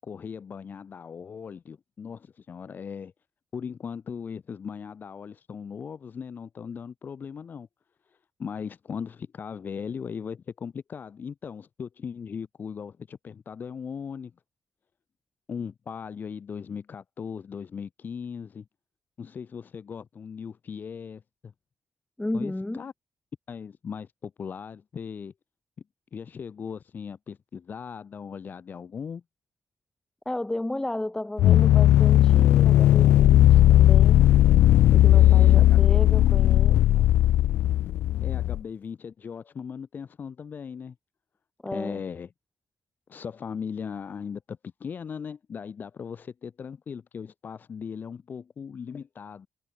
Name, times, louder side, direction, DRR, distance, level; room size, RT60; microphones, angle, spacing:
voice 1, 0.0-3.1 3.5-7.7 8.4-14.3 15.5-18.6 19.2-21.5 22.3-22.9 23.5-25.3 26.1-29.2 35.1-35.8 38.2-40.9 41.7-42.3 43.1-49.5, left 6 dB, 55° left, 1.3 m, -38 dB
voice 2, 22.2-22.8 30.2-34.3 34.9-37.0 41.6-42.0, left 1 dB, 15° left, 1.0 m, -33 dB
sound 1, 31.4-38.6, left 13 dB, 80° left, 0.4 m, -17 dB
supercardioid pair, 55°, 4 cm